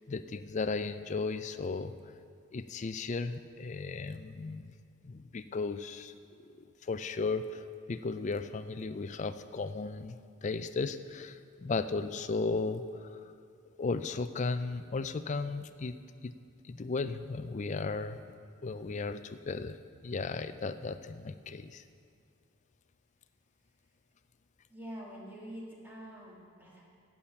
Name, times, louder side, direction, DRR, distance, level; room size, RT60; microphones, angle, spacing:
voice 1, 0.1-1.9 2.5-4.7 5.0-6.1 6.6-10.2 10.4-13.2 13.8-16.0 16.2-16.3 16.7-18.2 18.6-19.8 20.0-21.8, left 4 dB, 35° left, 11 dB, 0.4 m, -35 dB
voice 2, 24.7-26.8, equal, 10° right, -5 dB, 1.9 m, -46 dB
9.9 x 8.8 x 7.1 m, 2.3 s
head